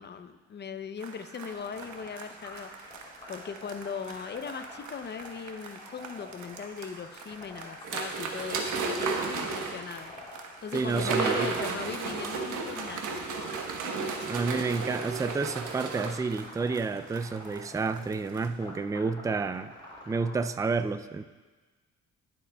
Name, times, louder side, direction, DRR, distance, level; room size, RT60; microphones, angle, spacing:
voice 1, 0.0-10.1 10.6-13.5 13.8-13.9, left 6 dB, 35° left, 10 dB, 0.7 m, -39 dB
sound 1, 1.0-18.5, right 5 dB, 70° right, 1.1 m, -49 dB
sound 2, 1.4-20.3, left 1 dB, 15° left, 3.5 m, -48 dB
sound 3, 7.8-9.9 10.7-16.1, right 4 dB, 90° right, 1.2 m, -32 dB
voice 2, 10.7-11.5 14.3-19.7 20.1-21.2, right 4 dB, 10° right, 10 dB, 0.4 m, -30 dB
19.0 x 7.4 x 2.3 m, 1.3 s
cardioid pair, 90°, 30 cm